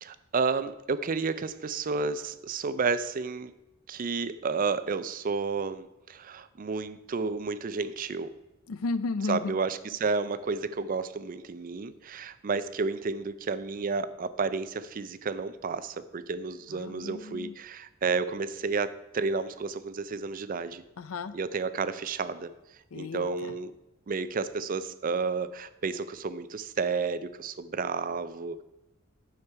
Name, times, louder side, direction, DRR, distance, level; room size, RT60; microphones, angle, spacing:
voice 1, 0.0-3.5 3.9-8.3 9.3-20.8 21.3-22.5 22.9-23.7 24.1-28.6, right 4 dB, 40° right, 14 dB, 0.4 m, -31 dB
voice 2, 8.7-9.6 16.7-17.6 21.0-21.4 22.9-23.5, left 3 dB, 85° left, 15 dB, 0.5 m, -34 dB
9.6 x 7.1 x 4.6 m, 0.95 s
head